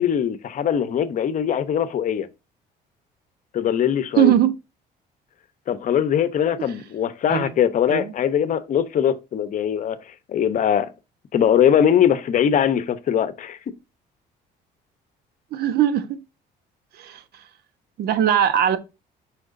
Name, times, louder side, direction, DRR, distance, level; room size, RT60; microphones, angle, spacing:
voice 1, 0.0-2.3 3.5-4.3 5.7-10.9 11.3-13.6, left 9 dB, 50° left, 0.9 m, -21 dB
voice 2, 4.2-4.5 7.3-7.5 7.9-8.1 15.5-16.2 16.9-17.2 18.0-18.8, right 11 dB, 70° right, 1.1 m, -20 dB
7.8 x 5.9 x 2.6 m
cardioid pair, 110°, 17 cm